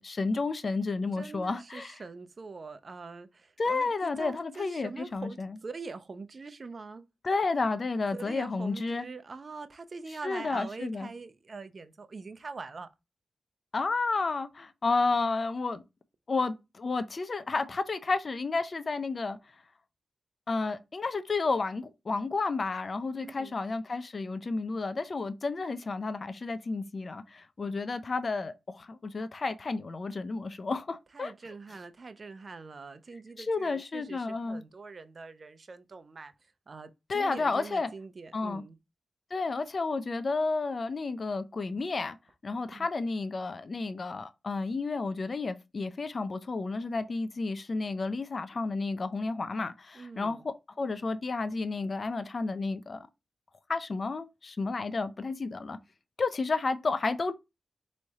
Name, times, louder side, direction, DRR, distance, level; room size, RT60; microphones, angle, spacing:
voice 1, 0.0-2.0 3.6-5.5 7.2-9.0 10.2-11.1 13.7-15.8 16.3-19.4 20.5-31.3 33.4-34.6 37.1-37.9 38.3-38.6 39.3-42.2 42.4-53.1 53.7-55.8 56.2-57.3, left 3 dB, 50° left, 0.5 m, -31 dB
voice 2, 1.1-7.1 8.1-12.9 23.1-23.5 31.1-38.8 42.7-42.9 49.9-50.4, right 4 dB, 55° right, 0.6 m, -44 dB
4.1 x 3.2 x 3.5 m
cardioid pair, 55°, 0 cm